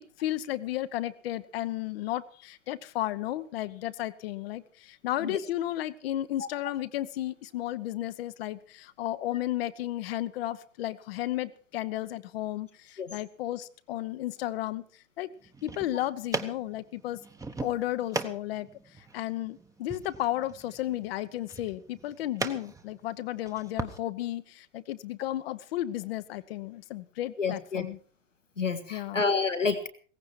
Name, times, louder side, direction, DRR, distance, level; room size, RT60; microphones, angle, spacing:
voice 1, 0.0-14.8 15.2-15.3 15.6-17.2 17.6-28.0 28.9-29.2, left 14 dB, 55° left, 13 dB, 1.0 m, -33 dB
sound 1, 15.4-24.0, right 3 dB, 10° right, 1.1 m, -39 dB
voice 2, 27.4-27.9 28.6-29.9, left 4 dB, 85° left, 6 dB, 1.7 m, -29 dB
17.5 x 15.5 x 4.6 m, 0.43 s
figure-of-eight pair, 85°, 37 cm